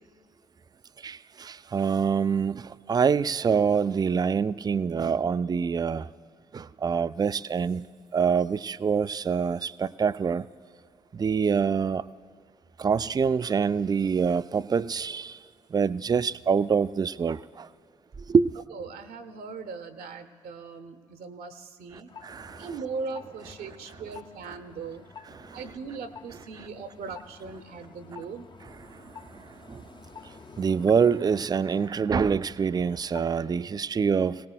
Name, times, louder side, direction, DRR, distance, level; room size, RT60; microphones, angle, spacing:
voice 1, 1.0-6.1 6.5-7.9 8.1-10.4 11.1-12.0 12.8-15.4 15.7-17.7 18.3-18.5 22.2-22.7 29.7-29.8 30.6-34.4, right 6 dB, 25° right, 0.3 m, -25 dB
voice 2, 18.7-22.1 22.6-25.1 25.5-28.5, right 4 dB, 70° right, 0.8 m, -39 dB
sound 1, 22.1-33.5, left 5 dB, 30° left, 0.5 m, -49 dB
21.5 x 18.0 x 2.3 m
hypercardioid pair, 40°, 16 cm